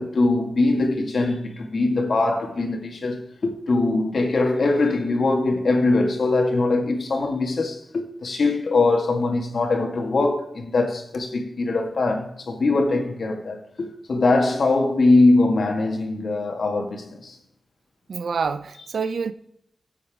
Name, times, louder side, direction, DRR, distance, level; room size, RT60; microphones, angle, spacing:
voice 1, 0.0-17.4, left 2 dB, 70° left, 1.9 m, -22 dB
voice 2, 18.1-19.3, right 5 dB, 85° right, 0.5 m, -27 dB
14.0 x 8.1 x 3.6 m
wide cardioid pair, 75°, 0 cm